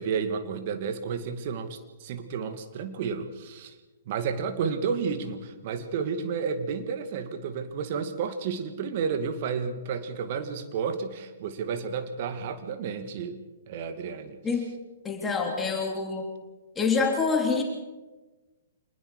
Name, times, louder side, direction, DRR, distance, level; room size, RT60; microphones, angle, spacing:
voice 1, 0.0-3.7 4.1-13.4 13.7-14.4, right 6 dB, 45° right, 8 dB, 2.3 m, -31 dB
voice 2, 15.0-16.3 16.7-17.6, left 4 dB, 15° left, 1 dB, 3.2 m, -26 dB
26.5 x 20.5 x 5.0 m, 1.2 s
figure-of-eight pair, 120°, 0 cm